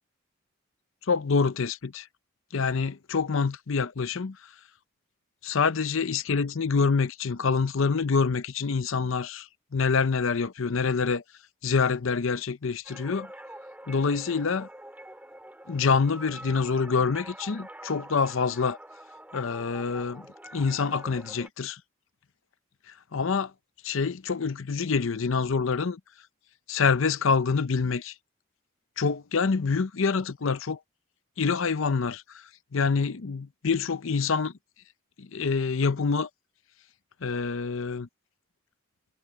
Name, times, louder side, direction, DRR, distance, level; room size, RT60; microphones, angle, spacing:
voice 1, 1.1-2.1 2.5-4.4 5.4-11.2 11.6-13.3 13.9-14.7 15.7-18.8 19.3-20.3 20.5-21.8 23.1-23.5 23.8-26.0 26.7-28.1 29.0-30.8 31.4-32.2 32.7-34.5 35.2-36.3 37.2-38.1, left 5 dB, 65° left, 0.6 m, -26 dB
sound 1, 12.8-21.5, right 1 dB, 5° right, 5.1 m, -45 dB
head